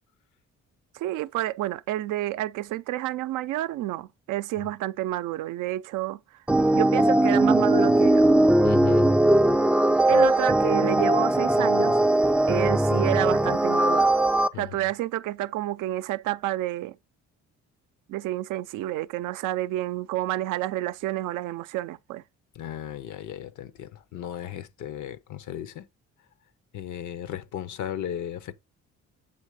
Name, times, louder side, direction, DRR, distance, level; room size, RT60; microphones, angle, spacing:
voice 1, 0.9-6.2 6.7-8.3 10.1-12.0 12.5-14.2 14.5-17.0 18.1-22.2, right 15 dB, 90° right, 0.5 m, -29 dB
sound 1, 6.5-14.5, right 1 dB, 5° right, 0.3 m, -20 dB
voice 2, 8.6-9.1 10.1-10.3 14.5-14.8 22.5-25.9 26.7-28.5, left 10 dB, 75° left, 0.8 m, -36 dB
8.0 x 3.2 x 4.8 m
cardioid pair, 90°, 30 cm